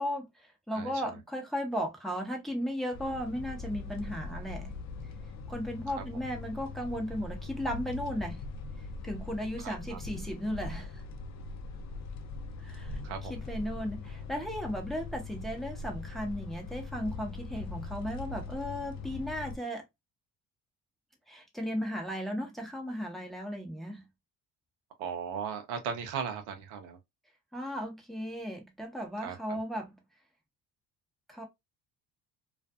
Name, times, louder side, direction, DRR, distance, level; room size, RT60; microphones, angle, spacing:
voice 1, 0.0-4.7 5.5-8.4 9.0-11.0 12.6-13.0 13.3-19.8 21.3-24.0 27.5-29.9 31.3-31.4, equal, ahead, 0.8 m, -35 dB
sound 1, 2.9-19.6, left 3 dB, 45° left, 0.6 m, -41 dB
voice 2, 9.6-10.0 13.0-13.4 25.0-27.0 29.2-29.6, right 7 dB, 85° right, 0.8 m, -37 dB
2.5 x 2.5 x 2.3 m
supercardioid pair, 80°, 40 cm